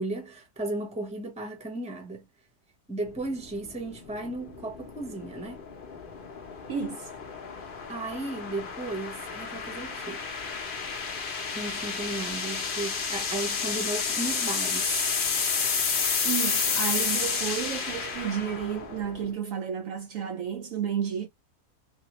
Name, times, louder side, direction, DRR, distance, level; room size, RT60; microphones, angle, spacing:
voice 1, 0.0-2.2 2.9-5.7 7.9-10.3 11.5-14.9, right 2 dB, 5° right, 0.7 m, -35 dB
sound 1, 3.1-19.3, left 5 dB, 45° left, 0.7 m, -31 dB
voice 2, 6.7-7.1 16.2-21.3, right 8 dB, 70° right, 0.8 m, -32 dB
3.6 x 2.5 x 3.0 m
omnidirectional pair, 1.7 m